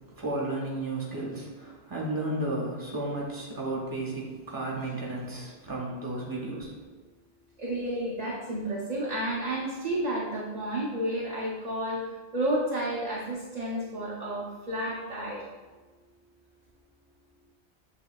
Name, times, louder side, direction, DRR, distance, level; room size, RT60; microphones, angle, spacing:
voice 1, 0.0-6.7, right 2 dB, 20° right, -4 dB, 1.1 m, -33 dB
voice 2, 7.6-15.5, right 1 dB, 45° right, -4 dB, 0.6 m, -31 dB
7.5 x 2.9 x 2.3 m, 1.3 s
omnidirectional pair, 1.2 m